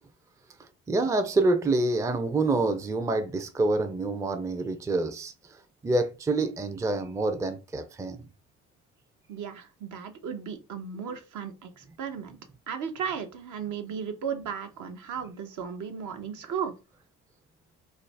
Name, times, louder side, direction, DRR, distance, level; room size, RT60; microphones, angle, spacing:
voice 1, 0.6-5.6 5.8-8.3, right 2 dB, 10° right, 0.4 m, -27 dB
voice 2, 9.3-12.4 12.7-16.7, right 7 dB, 60° right, 0.7 m, -35 dB
2.4 x 2.0 x 3.2 m
hypercardioid pair, 55°, 35 cm